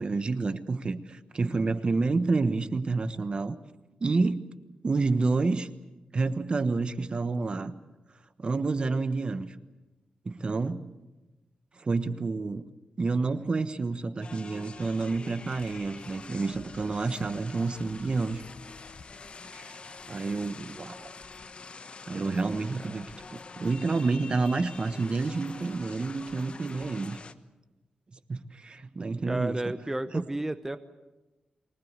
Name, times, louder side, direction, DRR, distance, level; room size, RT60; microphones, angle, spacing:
voice 1, 0.0-3.6 4.0-4.4 4.8-5.7 6.1-7.7 8.4-9.5 10.2-10.9 11.8-12.6 13.0-18.4 19.5-19.8 20.1-21.1 22.1-27.2 28.3-29.7 30.1-30.2, right 3 dB, 40° right, 12 dB, 1.2 m, -29 dB
sound 1, 14.2-27.3, left 4 dB, 45° left, 1.1 m, -46 dB
voice 2, 29.3-30.8, right 1 dB, 10° right, 10 dB, 0.9 m, -32 dB
24.5 x 19.5 x 8.2 m, 1.1 s
wide cardioid pair, 110°, 3 cm